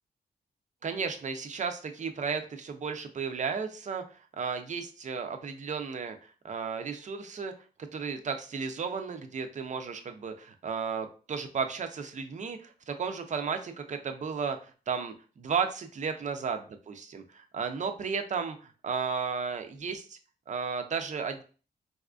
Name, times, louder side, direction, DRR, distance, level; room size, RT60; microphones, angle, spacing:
voice 1, 0.8-6.2 6.4-7.5 7.8-16.6 16.9-20.2 20.5-21.4, right 5 dB, 45° right, 7 dB, 0.4 m, -34 dB
4.0 x 2.4 x 2.3 m, 0.37 s
wide cardioid pair, 135°, 17 cm